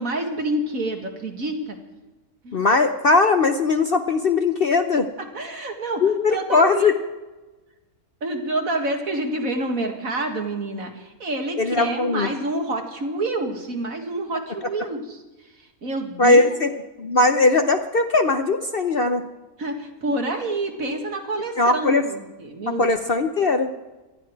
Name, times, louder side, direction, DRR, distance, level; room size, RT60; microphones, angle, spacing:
voice 1, 0.0-1.8 2.4-2.6 5.3-6.0 6.3-6.9 8.2-15.2 15.8-16.5 19.6-22.8, right 2 dB, 60° right, 3 dB, 2.4 m, -28 dB
voice 2, 2.5-5.1 6.0-6.9 11.6-12.3 16.2-16.7 17.0-19.2 21.6-22.1 22.7-23.7, left 3 dB, 50° left, 7 dB, 0.8 m, -19 dB
19.0 x 13.5 x 4.7 m, 1.2 s
omnidirectional pair, 1.6 m